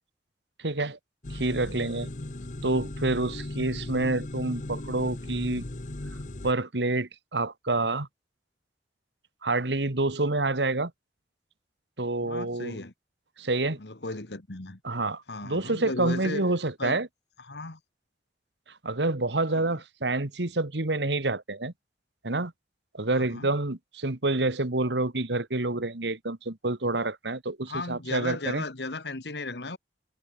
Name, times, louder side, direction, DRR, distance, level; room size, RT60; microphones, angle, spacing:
voice 1, 0.6-1.0 1.3-2.1 2.6-5.6 6.4-8.1 9.4-10.9 12.0-12.8 13.4-13.8 14.8-17.1 18.8-21.7 22.2-22.5 22.9-28.6, right 2 dB, 80° right, 1.9 m, -28 dB
sound 1, 1.2-6.5, left 1 dB, 45° left, 1.1 m, -37 dB
voice 2, 12.2-12.9 13.8-14.8 15.3-16.4 16.8-17.0 17.4-17.8 19.5-19.7 23.1-23.5 27.7-29.8, left 2 dB, 70° left, 2.1 m, -36 dB
head